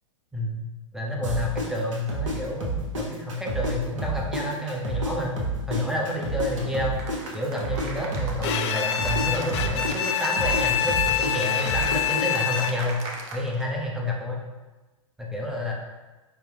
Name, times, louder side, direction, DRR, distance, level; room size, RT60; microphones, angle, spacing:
voice 1, 0.9-5.4 5.7-7.0 7.3-13.0 13.3-14.4 15.2-15.7, left 1 dB, ahead, -2 dB, 0.6 m, -29 dB
sound 1, 1.2-3.7 4.0-7.9 8.1-12.3, right 2 dB, 65° right, 1.2 m, -29 dB
Cheering / Applause, 7.0-13.7, right 2 dB, 40° right, 0.7 m, -37 dB
Bowed string instrument, 8.4-13.0, left 10 dB, 55° left, 0.4 m, -26 dB
5.4 x 2.2 x 3.4 m, 1.2 s
hypercardioid pair, 115°, 17 cm